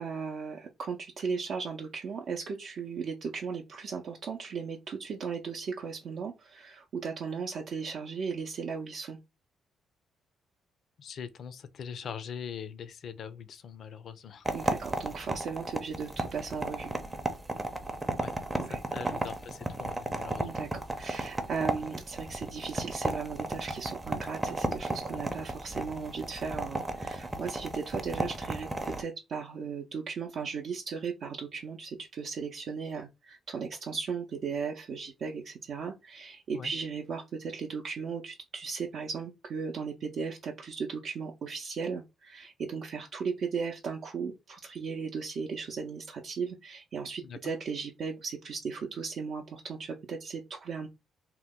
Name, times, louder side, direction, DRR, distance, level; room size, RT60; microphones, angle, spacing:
voice 1, 0.0-9.2 14.5-16.9 18.6-18.8 20.4-20.7 21.0-50.9, right 5 dB, 60° right, 0.5 m, -36 dB
voice 2, 11.0-14.5 18.2-18.3 18.7-20.5 36.5-36.7 47.2-47.4, left 7 dB, 60° left, 0.4 m, -42 dB
sound 1, 14.4-29.0, right 2 dB, 15° right, 0.5 m, -34 dB
2.8 x 2.1 x 3.5 m
cardioid pair, 90°, 0 cm